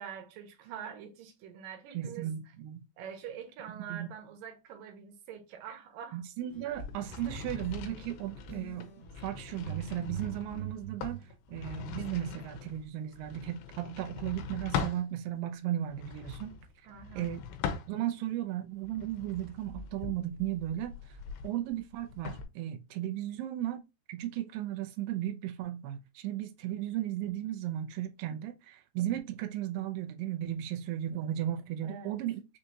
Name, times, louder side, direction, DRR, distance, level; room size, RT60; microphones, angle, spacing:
voice 1, 0.0-2.3 3.0-6.2 16.9-17.3 31.8-32.2, right 8 dB, 70° right, 2.2 m, -45 dB
voice 2, 1.9-2.9 3.9-4.1 6.1-8.9 9.2-11.2 11.5-16.5 17.2-17.4 17.9-20.9 21.4-23.8 24.1-32.4, right 12 dB, 90° right, 2.0 m, -35 dB
sound 1, 6.4-8.2 8.5-11.3, right 8 dB, 60° left, 1.5 m, -44 dB
sound 2, 6.7-15.1 15.9-18.3 18.8-22.4, left 6 dB, 85° left, 2.6 m, -41 dB
6.3 x 2.6 x 2.7 m
omnidirectional pair, 4.7 m